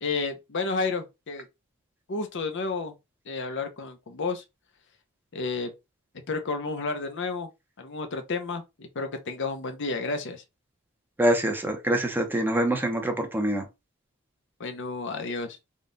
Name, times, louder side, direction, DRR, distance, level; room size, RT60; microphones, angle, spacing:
voice 1, 0.0-1.4 2.1-2.9 3.3-4.4 5.3-5.7 6.3-7.5 7.8-10.4 14.6-15.6, left 3 dB, 55° left, 0.7 m, -31 dB
voice 2, 11.2-13.6, right 1 dB, 10° right, 0.8 m, -25 dB
3.7 x 2.4 x 3.8 m
head